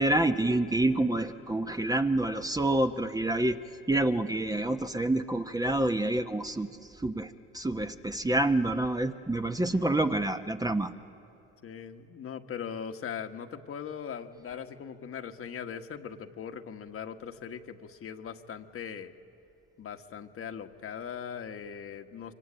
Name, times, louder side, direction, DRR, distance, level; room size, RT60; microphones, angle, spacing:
voice 1, 0.0-3.6 3.9-6.7 7.0-10.9, right 1 dB, 10° right, 6 dB, 1.1 m, -27 dB
voice 2, 11.6-19.1 19.8-22.3, left 7 dB, 45° left, 6 dB, 1.5 m, -40 dB
25.5 x 24.0 x 8.9 m, 2.7 s
supercardioid pair, 75°, 30 cm